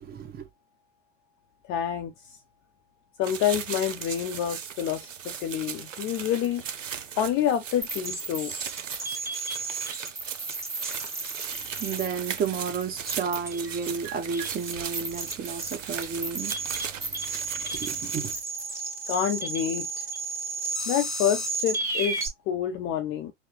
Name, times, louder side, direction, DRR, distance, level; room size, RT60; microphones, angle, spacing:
voice 1, 0.0-0.5 11.8-16.8 17.6-18.3, right 6 dB, 25° right, 1.1 m, -32 dB
voice 2, 1.7-2.4 3.2-6.6 7.2-8.5 19.1-20.1 20.9-23.3, left 10 dB, 35° left, 0.6 m, -28 dB
sound 1, 3.2-18.3, right 8 dB, 85° right, 0.7 m, -38 dB
sound 2, 7.8-22.3, right 3 dB, 5° right, 1.5 m, -33 dB
4.6 x 2.1 x 3.2 m
hypercardioid pair, 95°, 37 cm